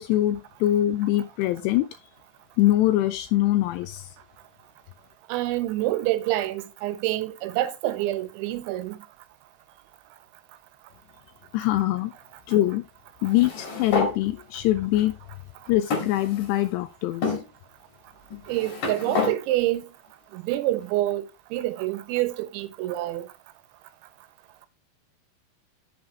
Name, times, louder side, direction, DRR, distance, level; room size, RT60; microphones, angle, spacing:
voice 1, 0.0-1.9 2.6-4.1 11.5-12.1 12.5-12.8 13.2-15.1 15.7-17.4, left 14 dB, 85° left, 2.5 m, -23 dB
voice 2, 5.3-9.0 18.5-19.9 20.3-21.2 21.5-23.3, right 15 dB, 85° right, 3.0 m, -27 dB
sound 1, 13.3-14.1 15.0-15.1 15.9-16.7 17.2-17.4 18.3-19.4, left 4 dB, 50° left, 3.9 m, -28 dB
7.9 x 7.3 x 3.2 m
omnidirectional pair, 5.4 m